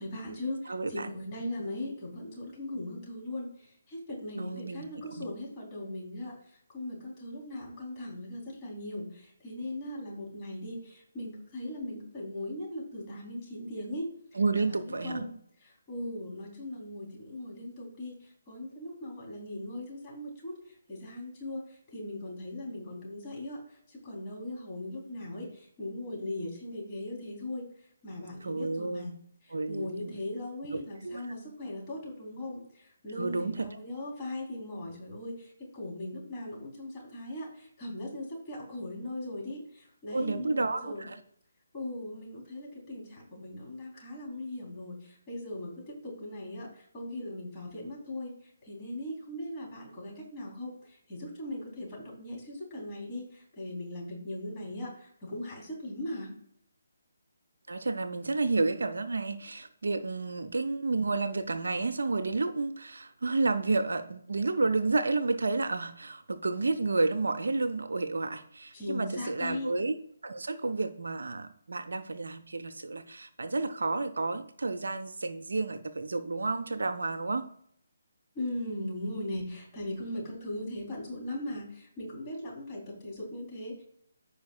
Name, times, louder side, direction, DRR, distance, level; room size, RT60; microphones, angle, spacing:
voice 1, 0.0-15.3 15.6-27.7 28.0-29.2 29.4-41.1 41.7-56.3 68.7-69.7 78.3-83.8, left 1 dB, 20° left, -3 dB, 3.6 m, -39 dB
voice 2, 0.7-1.1 4.4-4.8 5.1-5.2 14.3-15.3 28.4-29.1 29.5-30.2 31.0-31.2 33.2-33.7 40.1-41.2 57.7-70.0 70.2-77.5, right 3 dB, 60° right, 11 dB, 0.6 m, -31 dB
15.0 x 5.1 x 2.4 m, 0.67 s
figure-of-eight pair, 145°, 0 cm